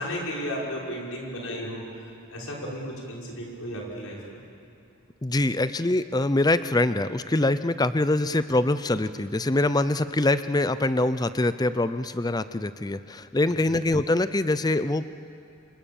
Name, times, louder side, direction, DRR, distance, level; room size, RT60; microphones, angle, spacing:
voice 1, 0.0-4.4 13.5-13.6, equal, 80° left, -3 dB, 6.1 m, -34 dB
voice 2, 5.2-15.1, left 2 dB, 20° left, 13 dB, 0.5 m, -24 dB
27.5 x 25.0 x 7.2 m, 2.6 s
head